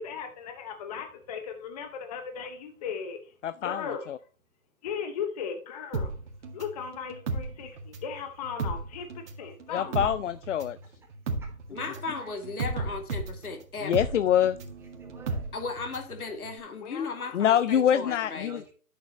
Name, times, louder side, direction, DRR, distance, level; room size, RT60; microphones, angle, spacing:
voice 1, 0.0-3.2 3.6-4.1 4.8-6.1 6.5-10.1 16.8-17.4, left 6 dB, 25° left, 6 dB, 0.9 m, -37 dB
voice 2, 3.4-4.2 9.7-10.8 13.8-14.6 17.3-18.6, left 10 dB, 55° left, 16 dB, 0.5 m, -25 dB
sound 1, 5.9-8.2 8.4-16.1 16.4-16.5, right 3 dB, 50° right, 2.1 m, -34 dB
voice 3, 10.8-11.5 12.1-12.3 15.0-15.5 18.4-18.7, right 4 dB, 5° right, -1 dB, 1.3 m, -51 dB
voice 4, 11.7-14.1 15.5-18.6, left 4 dB, 75° left, 4 dB, 2.6 m, -36 dB
11.0 x 6.7 x 3.0 m, 0.40 s
hypercardioid pair, 145°, 45 cm